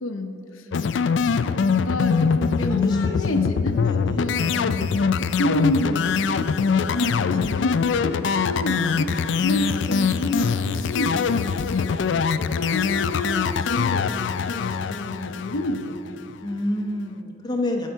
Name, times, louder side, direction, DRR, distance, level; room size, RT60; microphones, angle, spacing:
voice 1, 0.0-0.7 1.6-3.8 4.1-4.9 5.2-9.1 9.4-16.3, left 1 dB, 85° left, 5 dB, 0.7 m, -29 dB
sound 1, 0.7-16.1, left 6 dB, 60° left, 0.3 m, -23 dB
voice 2, 1.7-2.1 2.6-3.5 3.8-4.5 5.0-5.5 8.6-9.5 12.3-12.7 16.4-17.9, left 1 dB, 20° left, 1 dB, 0.8 m, -31 dB
15.5 x 5.6 x 4.6 m, 2.8 s
head